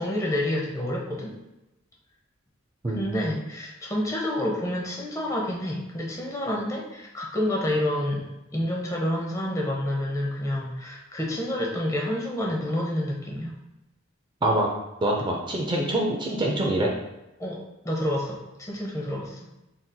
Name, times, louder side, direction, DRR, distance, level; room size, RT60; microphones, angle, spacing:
voice 1, 0.0-1.3 2.9-13.6 17.4-17.6 17.8-19.5, left 1 dB, 15° left, -2 dB, 0.7 m, -28 dB
voice 2, 2.8-3.2 14.4-14.7 15.0-16.9, right 1 dB, 25° right, -1 dB, 0.4 m, -25 dB
4.1 x 3.9 x 2.2 m, 0.95 s
head